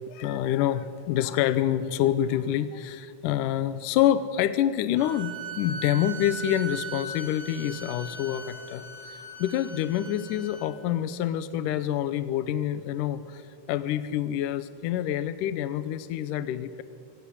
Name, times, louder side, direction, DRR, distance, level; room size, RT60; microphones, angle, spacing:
voice 1, 0.1-13.4 13.7-16.8, left 11 dB, 80° left, 13 dB, 2.3 m, -27 dB
sound 1, 5.0-10.7, right 2 dB, 65° right, 4.5 m, -39 dB
24.5 x 18.0 x 9.9 m, 2.4 s
omnidirectional pair, 3.8 m